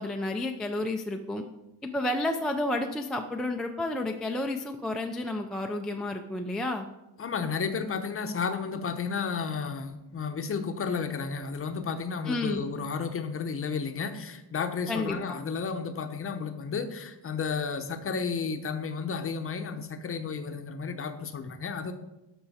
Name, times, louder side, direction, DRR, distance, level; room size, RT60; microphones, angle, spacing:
voice 1, 0.0-1.4 1.8-6.9 12.3-12.7 14.9-15.4, left 2 dB, ahead, 3 dB, 0.3 m, -31 dB
voice 2, 7.2-21.9, left 5 dB, 30° left, 8 dB, 0.7 m, -32 dB
11.5 x 6.2 x 4.1 m, 0.96 s
cardioid pair, 160°, 43 cm